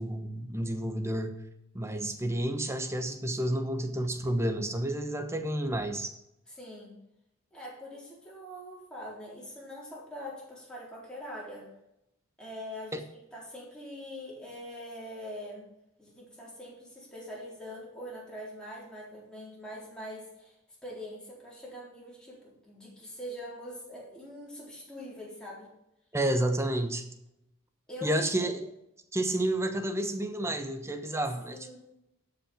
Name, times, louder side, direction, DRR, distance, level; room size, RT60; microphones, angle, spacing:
voice 1, 0.0-1.4 1.7-6.1 12.9-13.0 26.1-27.0 28.0-28.7 29.1-31.8, right 1 dB, 10° right, 7 dB, 1.0 m, -30 dB
voice 2, 6.5-6.9 7.5-11.7 12.4-13.0 13.3-15.6 16.0-20.6 20.8-25.7 27.9-28.5 31.5-31.8, equal, 5° left, -5 dB, 3.8 m, -43 dB
12.0 x 5.8 x 5.9 m, 0.84 s
head